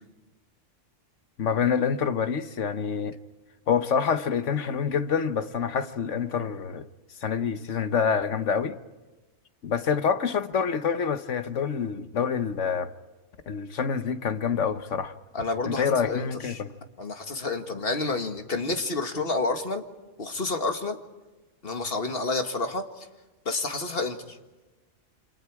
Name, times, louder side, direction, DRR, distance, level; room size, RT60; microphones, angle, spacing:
voice 1, 1.4-3.1 3.7-6.8 7.2-8.8 9.6-12.9 13.5-15.1 15.7-16.7, left 6 dB, 70° left, 1.3 m, -26 dB
voice 2, 15.3-16.6 17.0-19.8 20.2-21.0 21.6-23.1 23.5-24.4, left 3 dB, 50° left, 2.0 m, -29 dB
28.5 x 26.5 x 4.8 m
omnidirectional pair, 1.3 m